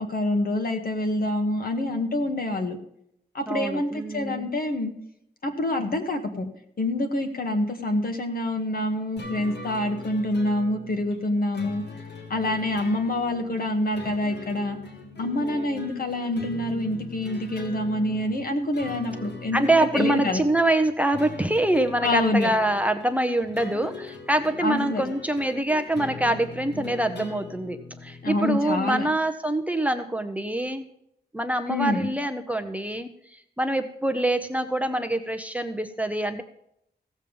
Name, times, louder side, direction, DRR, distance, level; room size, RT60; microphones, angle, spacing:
voice 1, 0.0-2.8 3.3-4.9 5.4-6.5 6.8-11.8 12.3-14.8 15.2-20.4 22.0-22.5 24.6-25.0 28.2-29.1 31.7-32.1, left 1 dB, 60° left, 5 dB, 1.7 m, -26 dB
voice 2, 3.5-4.5 15.4-16.1 19.5-30.8 31.3-36.4, right 1 dB, 10° right, 8 dB, 0.7 m, -25 dB
sound 1, 9.2-28.4, left 3 dB, 85° left, 2.4 m, -41 dB
16.0 x 7.2 x 5.4 m, 0.75 s
wide cardioid pair, 160°, 17 cm